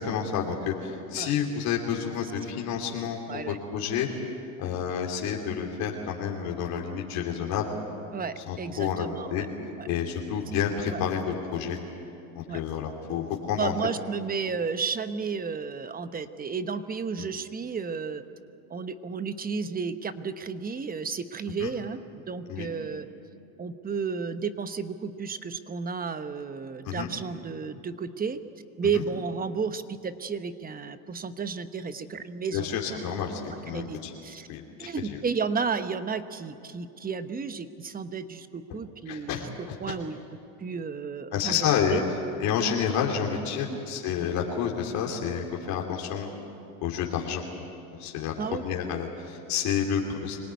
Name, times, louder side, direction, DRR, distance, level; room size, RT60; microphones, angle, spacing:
voice 1, 0.0-4.1 4.6-7.7 8.5-9.4 9.9-11.8 12.3-13.7 17.2-17.3 21.6-21.7 22.5-22.7 26.8-27.1 28.9-29.0 32.5-34.1 34.5-35.2 38.7-38.8 39.1-39.9 41.3-42.0 42.4-46.3 46.8-47.5 48.0-50.4, left 8 dB, 55° left, 0 dB, 2.8 m, -29 dB
voice 2, 3.3-3.6 8.1-9.5 9.8-9.9 10.9-11.0 12.5-12.6 13.6-18.2 18.7-23.1 23.6-28.4 28.8-33.3 33.7-34.0 34.2-34.5 34.8-40.2 40.6-41.6 41.9-42.0 43.7-43.8 48.4-48.6, right 5 dB, 20° right, 11 dB, 1.0 m, -32 dB
25.5 x 18.0 x 9.5 m, 2.7 s
supercardioid pair, 105°, 42 cm